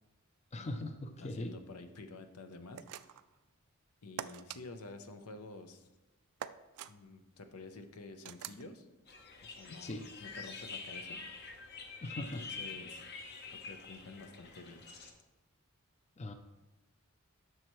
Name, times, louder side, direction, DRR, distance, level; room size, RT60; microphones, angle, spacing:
voice 1, 0.5-1.5 9.7-10.1 12.0-12.6 16.2-16.3, left 1 dB, 30° left, 7 dB, 0.5 m, -40 dB
voice 2, 1.2-2.9 4.0-5.9 6.9-8.9 9.4-11.2 12.1-13.0 13.4-14.8, left 3 dB, 80° left, 8 dB, 0.7 m, -50 dB
sound 1, 2.7-3.3 4.2-4.6 6.4-6.9 8.2-8.6, right 10 dB, 75° right, 0.3 m, -44 dB
sound 2, 9.1-15.1, left 4 dB, 50° left, 0.9 m, -46 dB
10.5 x 6.5 x 3.1 m, 1.1 s
head